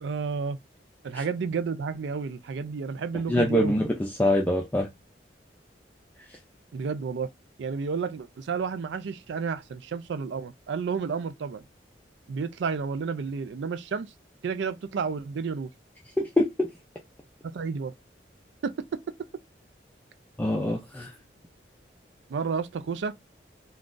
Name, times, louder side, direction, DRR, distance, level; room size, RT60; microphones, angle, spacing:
voice 1, 0.0-0.6 1.0-3.8 6.7-7.3 7.6-11.6 12.3-14.1 14.4-15.7 17.4-17.9 18.6-18.7 22.3-23.1, right 5 dB, 80° right, 0.4 m, -31 dB
voice 2, 3.3-4.9 16.2-16.7 20.4-21.1, left 1 dB, 10° left, 0.4 m, -24 dB
3.7 x 2.3 x 2.4 m
head